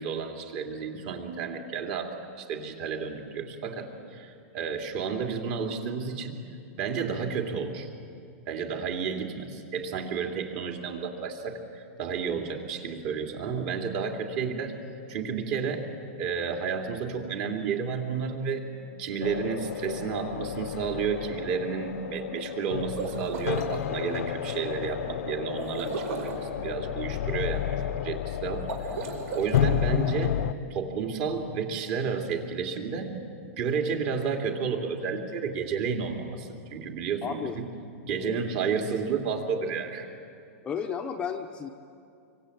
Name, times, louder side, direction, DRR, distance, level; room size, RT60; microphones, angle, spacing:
voice 1, 0.0-6.4 6.8-7.9 8.5-14.7 15.1-15.9 16.2-18.6 19.0-28.7 29.3-30.3 30.7-33.1 33.4-37.7 38.1-40.1, right 6 dB, 40° right, 3 dB, 3.0 m, -31 dB
sound 1, 19.2-30.5, left 10 dB, 75° left, 0.9 m, -31 dB
sound 2, 22.8-23.7 25.6-26.4 28.6-29.7, right 4 dB, 70° right, 5.1 m, -35 dB
voice 2, 37.2-37.6 38.1-38.4 40.6-41.7, left 7 dB, 15° left, 3 dB, 0.9 m, -33 dB
25.5 x 24.5 x 8.7 m, 2.4 s
supercardioid pair, 170°, 8 cm